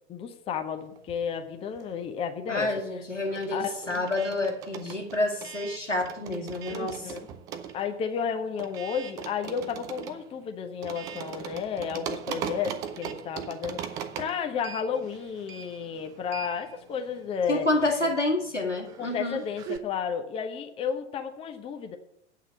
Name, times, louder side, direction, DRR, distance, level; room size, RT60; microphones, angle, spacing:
voice 1, 0.1-2.7 3.5-4.0 6.7-7.3 7.7-17.7 19.0-22.0, left 7 dB, 15° left, 6 dB, 0.8 m, -32 dB
sound 1, 1.0-2.2 2.5-19.8, right 8 dB, 10° right, 0.3 m, -40 dB
voice 2, 2.5-7.1 17.5-19.4, left 2 dB, 90° left, 2 dB, 2.0 m, -28 dB
8.8 x 5.7 x 8.2 m, 0.74 s
figure-of-eight pair, 100°, 35 cm